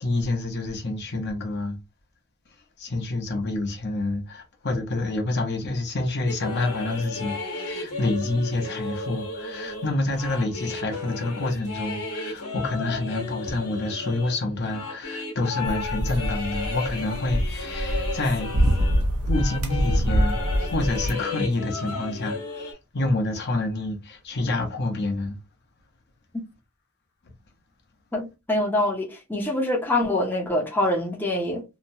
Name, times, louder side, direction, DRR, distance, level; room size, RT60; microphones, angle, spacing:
voice 1, 0.0-1.8 2.8-18.5 19.3-25.4, left 2 dB, 50° left, 0.8 m, -28 dB
sound 1, 6.3-19.0 19.3-22.7, left 3 dB, 85° left, 1.1 m, -34 dB
sound 2, 15.6-21.1, equal, 85° right, 0.7 m, -25 dB
voice 2, 28.1-31.6, left 1 dB, 10° left, 0.6 m, -25 dB
2.9 x 2.2 x 2.7 m
head